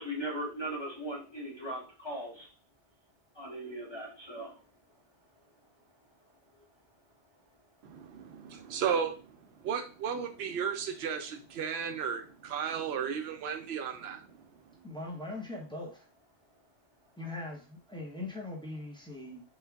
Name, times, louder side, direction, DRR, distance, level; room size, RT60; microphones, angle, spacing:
voice 1, 0.0-2.5 3.3-4.6, right 1 dB, 25° left, -4 dB, 0.9 m, -38 dB
voice 2, 7.8-14.8, right 7 dB, 70° right, 6 dB, 0.8 m, -35 dB
voice 3, 14.8-16.1 17.2-19.4, left 2 dB, 5° left, -2 dB, 0.6 m, -41 dB
3.2 x 2.3 x 3.4 m, 0.34 s
omnidirectional pair, 1.2 m